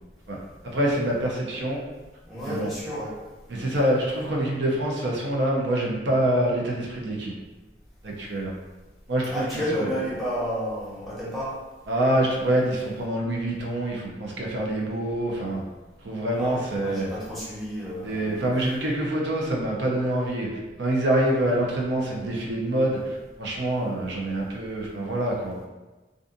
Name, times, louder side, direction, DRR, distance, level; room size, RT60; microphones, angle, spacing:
voice 1, 0.7-1.9 2.4-2.7 3.5-7.3 8.0-8.5 9.1-9.9 11.9-15.6 16.0-17.1 18.0-20.5 20.8-25.6, right 1 dB, 80° right, -2 dB, 0.6 m, -26 dB
voice 2, 2.3-3.1 3.5-3.8 9.3-11.5 16.4-18.5, equal, ahead, -8 dB, 0.7 m, -31 dB
2.5 x 2.4 x 2.6 m, 1.2 s
head